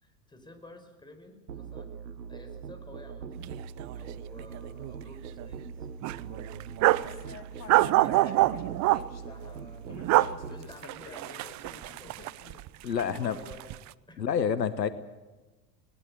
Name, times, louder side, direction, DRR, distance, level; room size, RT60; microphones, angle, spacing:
voice 1, 0.0-1.9 2.3-3.4 3.9-5.9 6.3-6.6 6.9-7.4 8.0-8.5 9.2-12.3 12.8-13.8 14.1-14.4, left 1 dB, 10° left, 7 dB, 4.9 m, -51 dB
Musical instrument, 1.5-10.7, right 6 dB, 80° right, 1.1 m, -42 dB
sound 1, 3.4-3.5 3.8-3.9 4.4-5.0 5.4-5.5 6.0-7.1 7.7-9.0 9.9-10.3 10.7-12.7 13.0-13.8, right 18 dB, 35° right, 0.7 m, -25 dB
sound 2, 7.1-12.6, left 8 dB, 30° left, 2.3 m, -49 dB
voice 2, 12.8-13.4 14.2-14.9, left 7 dB, 85° left, 14 dB, 1.2 m, -28 dB
20.0 x 19.5 x 8.2 m, 1.2 s
figure-of-eight pair, 80°, 49 cm